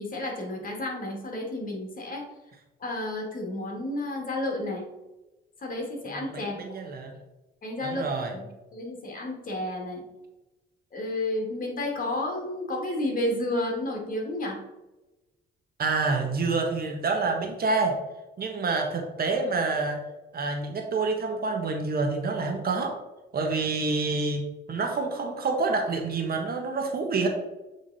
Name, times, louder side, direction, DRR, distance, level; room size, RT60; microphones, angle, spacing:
voice 1, 0.0-2.2 2.8-4.8 5.6-6.5 7.6-10.0 10.9-14.6, left 1 dB, 45° left, 0 dB, 2.2 m, -31 dB
voice 2, 6.1-7.1 7.8-8.3 15.8-18.0 18.4-20.0 20.3-22.9 23.3-27.3, right 3 dB, 50° right, 3 dB, 1.3 m, -27 dB
7.7 x 3.6 x 4.1 m, 1.0 s
cardioid pair, 90°, 20 cm